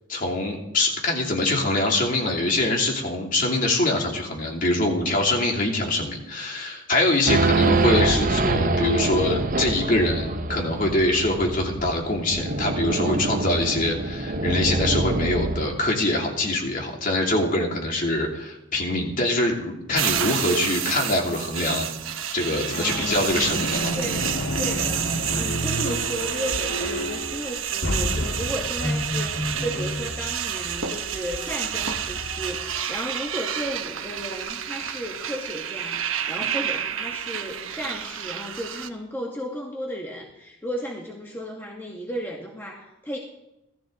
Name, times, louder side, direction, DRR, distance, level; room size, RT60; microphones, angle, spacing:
voice 1, 0.1-21.9 22.3-24.0, left 2 dB, 40° left, -1 dB, 2.8 m, -24 dB
Race car auto racing / Idling / Accelerating revving vroom, 7.2-15.9, right 2 dB, 40° right, 0.8 m, -25 dB
sound 1, 19.9-38.9, right 9 dB, 75° right, 1.1 m, -29 dB
sound 2, 22.7-32.8, equal, 65° left, 1.7 m, -30 dB
voice 2, 22.7-23.3 23.9-24.3 24.6-43.2, equal, 10° left, -2 dB, 1.7 m, -34 dB
17.0 x 14.0 x 3.9 m, 0.92 s
head